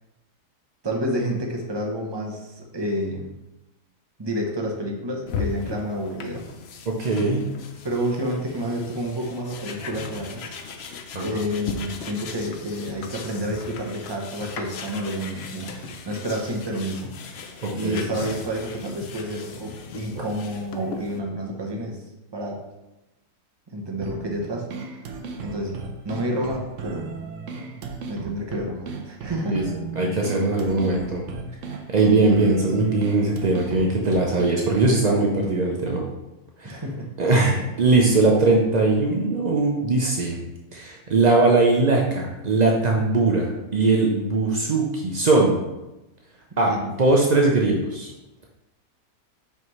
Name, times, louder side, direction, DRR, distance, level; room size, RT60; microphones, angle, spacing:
voice 1, 0.8-3.3 4.2-6.5 7.8-10.9 11.2-17.1 17.7-22.0 22.3-22.6 23.7-24.7 25.4-27.2 27.7-27.8 28.1-29.6 36.6-37.1 46.6-46.9, equal, 25° right, 0 dB, 0.5 m, -29 dB
sound 1, 5.3-21.2, left 4 dB, 75° left, 0.6 m, -37 dB
voice 2, 6.9-7.5 11.1-11.4 17.6-18.1 28.5-28.7 29.5-29.6 30.0-31.2 31.9-36.0 36.6-36.8 37.2-40.4 40.7-45.6 46.6-46.7 47.0-48.1, right 3 dB, 80° right, -1 dB, 0.3 m, -20 dB
sound 2, 24.0-35.0, right 4 dB, 60° right, 0.9 m, -36 dB
5.6 x 5.5 x 3.1 m, 0.99 s
omnidirectional pair, 1.7 m